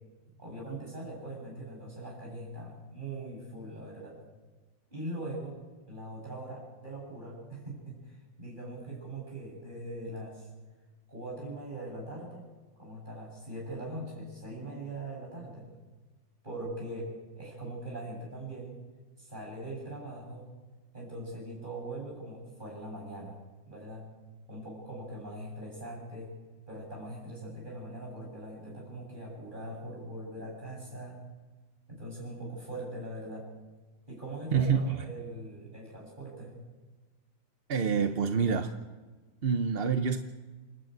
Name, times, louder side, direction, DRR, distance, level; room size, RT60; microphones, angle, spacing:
voice 1, 0.4-4.2 4.9-5.6 5.9-10.5 11.1-12.4 12.8-15.7 16.4-18.8 19.2-20.5 20.9-23.4 23.7-24.1 24.5-26.4 26.7-31.2 31.9-33.5 34.1-36.6, right 1 dB, 25° right, -3 dB, 7.8 m, -41 dB
voice 2, 34.5-35.1 37.7-38.7 39.4-40.2, right 6 dB, 45° right, 8 dB, 0.9 m, -27 dB
28.0 x 11.0 x 9.3 m, 1.3 s
omnidirectional pair, 2.0 m